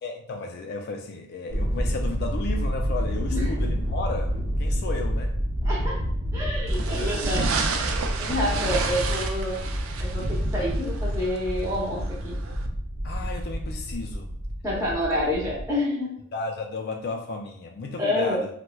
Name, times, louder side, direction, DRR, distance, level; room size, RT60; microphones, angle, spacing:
voice 1, 0.0-4.3 4.6-5.3 8.3-9.0 13.0-14.4 16.3-18.5, left 3 dB, 50° left, 3 dB, 0.3 m, -34 dB
Thunder, 1.5-15.7, equal, 70° right, 0.8 m, -28 dB
voice 2, 3.3-3.8 5.6-6.0 6.3-7.6 8.2-9.7 10.0-12.4 14.6-16.3 18.0-18.4, left 1 dB, 15° right, -7 dB, 0.8 m, -28 dB
sound 1, 6.7-12.7, right 5 dB, 90° right, 0.4 m, -32 dB
4.4 x 2.1 x 2.2 m, 0.68 s
head